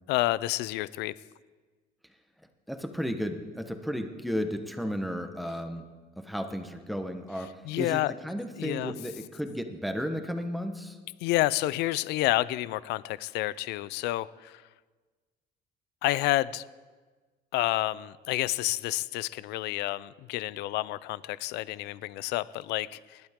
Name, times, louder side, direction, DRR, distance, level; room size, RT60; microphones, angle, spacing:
voice 1, 0.1-1.1 7.6-8.1 8.6-8.9 11.2-14.6 16.0-16.6 17.5-23.2, left 16 dB, 90° left, 19 dB, 0.5 m, -29 dB
voice 2, 2.7-5.9 6.2-11.0, equal, ahead, 6 dB, 1.2 m, -34 dB
20.0 x 12.0 x 3.7 m, 1.4 s
cardioid pair, 110°, 17 cm